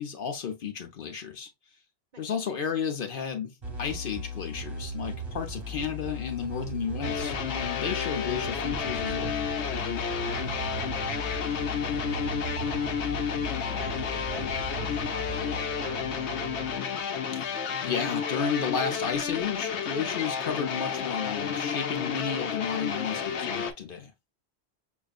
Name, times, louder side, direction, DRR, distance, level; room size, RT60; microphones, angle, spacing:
voice 1, 0.0-1.5 2.2-3.5 3.8-9.4 17.3-24.1, left 6 dB, 55° left, 0.9 m, -33 dB
sound 1, 3.6-16.9, equal, 25° right, 1.0 m, -38 dB
sound 2, 7.0-23.7, left 7 dB, 80° left, 0.9 m, -31 dB
sound 3, 8.6-16.8, right 4 dB, 15° left, 0.7 m, -43 dB
voice 2, 10.3-16.9, right 3 dB, 50° right, 0.6 m, -48 dB
6.2 x 2.4 x 2.4 m
omnidirectional pair, 1.1 m